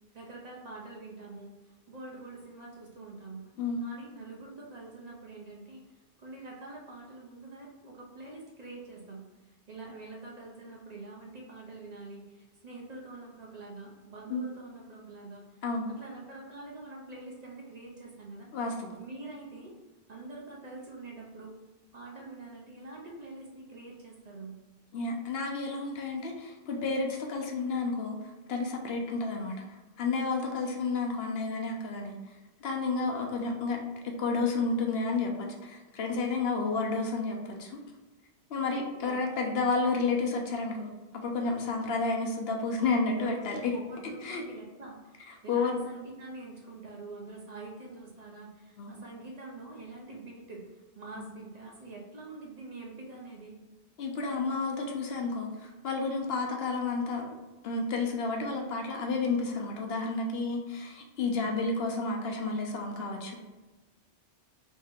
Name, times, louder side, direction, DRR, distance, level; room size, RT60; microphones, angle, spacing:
voice 1, 0.1-3.5 3.8-5.8 6.2-15.4 16.0-18.5 19.0-19.7 20.1-21.5 21.9-24.6 39.0-39.6 43.0-53.6, right 2 dB, 45° right, -2 dB, 0.7 m, -45 dB
voice 2, 18.5-19.0 24.9-28.1 28.5-29.5 30.0-32.1 32.6-33.8 34.0-35.3 35.6-37.8 38.5-43.7 44.2-44.4 45.5-45.8 48.8-48.9 51.2-51.3 54.0-57.4 57.6-63.4, left 3 dB, 70° left, 1 dB, 0.9 m, -31 dB
3.1 x 2.8 x 3.5 m, 1.2 s
omnidirectional pair, 1.1 m